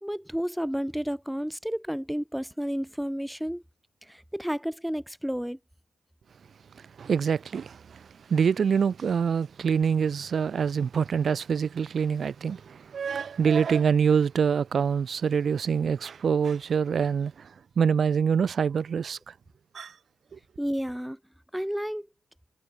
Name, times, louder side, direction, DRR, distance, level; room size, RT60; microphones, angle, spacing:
voice 1, 0.0-3.6 4.1-5.6 20.6-21.2 21.5-22.1, equal, 5° right, 0.7 m, -31 dB
voice 2, 6.7-19.3 19.7-19.9 20.3-20.4, right 6 dB, 60° right, 1.2 m, -25 dB
supercardioid pair, 50°, 0 cm